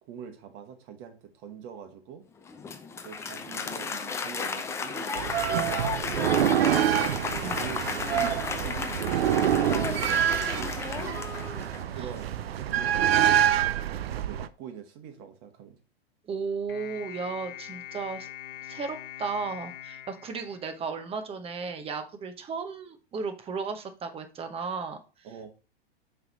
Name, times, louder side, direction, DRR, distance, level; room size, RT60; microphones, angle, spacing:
voice 1, 0.0-2.2 3.0-7.0 7.4-8.9 9.5-11.1 11.9-15.8 25.2-25.5, right 7 dB, 40° right, 5 dB, 1.5 m, -44 dB
Applause, 2.4-12.0, left 5 dB, 10° left, 0.4 m, -34 dB
sound 1, 5.2-14.5, right 10 dB, 75° right, 0.6 m, -26 dB
voice 2, 16.3-18.3 18.6-25.0, right 5 dB, 20° right, 7 dB, 1.0 m, -35 dB
sound 2, 16.7-21.2, left 12 dB, 60° left, 0.9 m, -43 dB
5.8 x 3.5 x 5.2 m, 0.34 s
hypercardioid pair, 110°, 31 cm